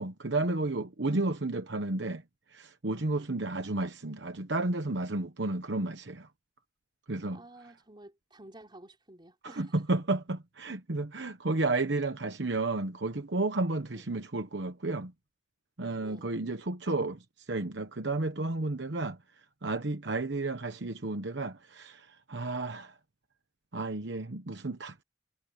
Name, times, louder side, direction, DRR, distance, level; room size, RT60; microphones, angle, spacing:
voice 1, 0.0-2.2 2.5-6.3 7.1-7.4 9.4-15.1 15.8-19.2 19.6-23.0 23.7-24.9, right 2 dB, 70° right, 1.1 m, -32 dB
voice 2, 7.3-9.8 13.9-14.1 16.0-16.4, right 1 dB, 25° right, 3.8 m, -52 dB
head